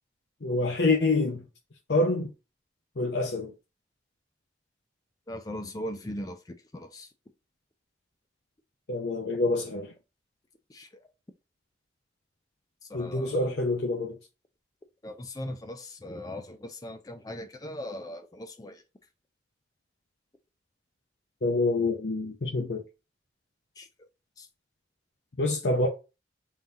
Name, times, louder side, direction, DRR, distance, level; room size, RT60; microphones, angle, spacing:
voice 1, 0.4-1.4 1.9-2.3 3.0-3.5 8.9-9.9 12.9-14.2 21.4-22.8 25.4-25.9, left 2 dB, 70° left, 0.7 m, -26 dB
voice 2, 5.3-7.1 10.7-11.1 12.8-13.5 15.0-18.8 23.8-24.1 24.4-24.5, left 1 dB, 20° left, 0.4 m, -39 dB
3.8 x 2.8 x 3.5 m
head